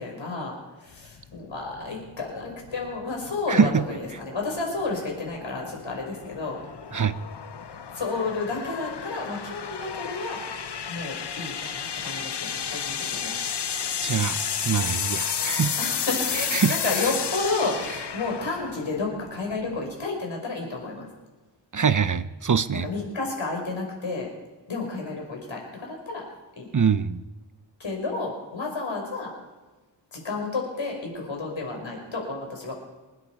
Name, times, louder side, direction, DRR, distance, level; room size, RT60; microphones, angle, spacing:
voice 1, 0.0-6.6 7.9-10.4 10.9-13.4 15.8-17.8 18.1-21.1 22.8-24.3 24.7-26.3 26.6-26.7 27.8-29.3 30.1-32.8, left 3 dB, 80° left, 5.2 m, -31 dB
sound 1, 0.9-20.0, left 7 dB, 60° left, 0.9 m, -32 dB
voice 2, 3.5-3.8 6.9-7.2 14.0-14.4 14.6-15.8 16.3-17.1 21.7-22.9 26.7-27.2, right 6 dB, 40° right, 0.7 m, -24 dB
26.0 x 9.8 x 4.6 m
cardioid pair, 55°, 45 cm